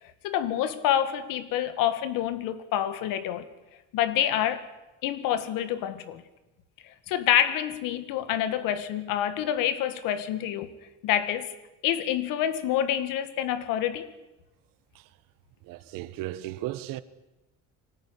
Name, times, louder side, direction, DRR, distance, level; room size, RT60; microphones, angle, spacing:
voice 1, 0.2-3.5 3.9-4.7 5.0-6.2 7.1-10.7 11.0-11.5 11.8-14.0, left 11 dB, 85° left, 2.2 m, -27 dB
voice 2, 15.6-17.0, right 15 dB, 90° right, 1.5 m, -35 dB
25.0 x 19.0 x 10.0 m
cardioid pair, 145°, 32 cm